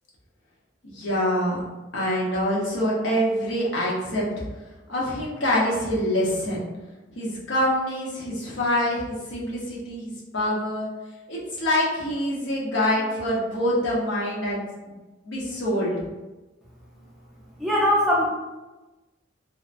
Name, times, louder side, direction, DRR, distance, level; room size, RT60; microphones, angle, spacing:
voice 1, 0.8-1.6 1.9-4.2 4.9-6.7 7.2-10.9 11.3-15.0 15.2-16.0, equal, 80° left, -6 dB, 0.8 m, -25 dB
voice 2, 17.6-18.3, left 1 dB, ahead, -6 dB, 0.5 m, -20 dB
2.8 x 2.1 x 2.5 m, 1.1 s
head